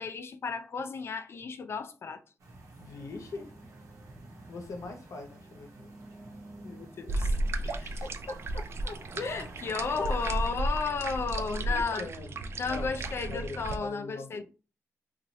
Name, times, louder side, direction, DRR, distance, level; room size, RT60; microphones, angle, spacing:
voice 1, 0.0-2.2 6.6-7.3 9.2-12.1 12.6-14.4, left 5 dB, 50° left, 0.4 m, -33 dB
sound 1, 2.4-10.5, right 2 dB, 85° right, 0.9 m, -51 dB
sound 2, 2.7-7.8, right 2 dB, 10° right, 0.8 m, -53 dB
voice 2, 2.8-3.5 4.4-5.9 7.5-9.5 11.6-12.4 12.6-14.4, left 3 dB, 80° left, 0.7 m, -42 dB
sound 3, 7.1-13.8, right 2 dB, 50° right, 0.3 m, -33 dB
3.0 x 2.4 x 2.6 m
wide cardioid pair, 120°, 5 cm